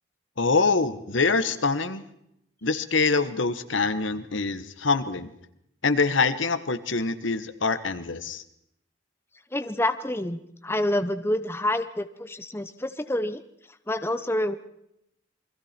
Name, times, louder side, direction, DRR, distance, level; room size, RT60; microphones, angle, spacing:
voice 1, 0.4-2.0 2.6-5.3 5.8-8.4, left 4 dB, 80° left, 12 dB, 1.4 m, -25 dB
voice 2, 9.5-13.4 13.9-14.6, left 1 dB, 10° left, 10 dB, 0.8 m, -27 dB
28.5 x 22.0 x 4.4 m, 0.77 s
head